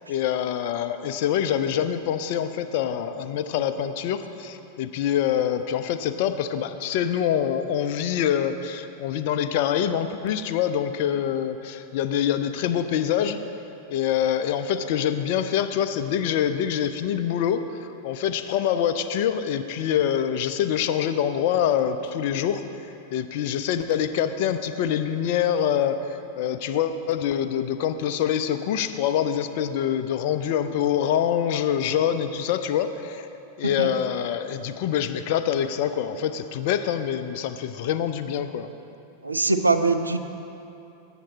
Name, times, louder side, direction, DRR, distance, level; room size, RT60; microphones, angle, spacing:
voice 1, 0.1-13.4 13.9-22.6 23.1-33.3 33.6-38.7, left 9 dB, 50° left, 10 dB, 0.4 m, -25 dB
voice 2, 33.6-33.9 39.2-40.2, right 3 dB, 80° right, 8 dB, 0.3 m, -22 dB
7.5 x 7.3 x 4.1 m, 2.9 s
figure-of-eight pair, 90°, 0 cm